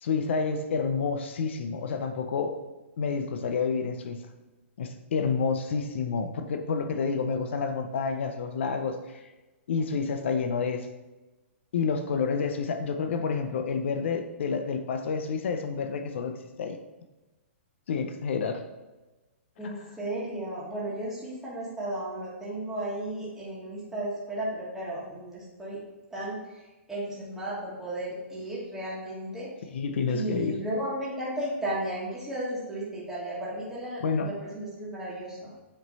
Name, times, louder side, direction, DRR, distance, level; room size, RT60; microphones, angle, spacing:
voice 1, 0.0-2.6 3.0-4.2 4.8-9.0 9.7-10.9 11.7-16.8 17.9-18.6 19.6-19.7 29.7-30.6 34.0-34.3, left 5 dB, 65° left, 7 dB, 0.7 m, -29 dB
voice 2, 19.6-25.8 26.1-29.5 30.1-35.5, right 1 dB, 5° right, -8 dB, 1.4 m, -34 dB
7.7 x 3.1 x 4.1 m, 1.1 s
hypercardioid pair, 160°, 7 cm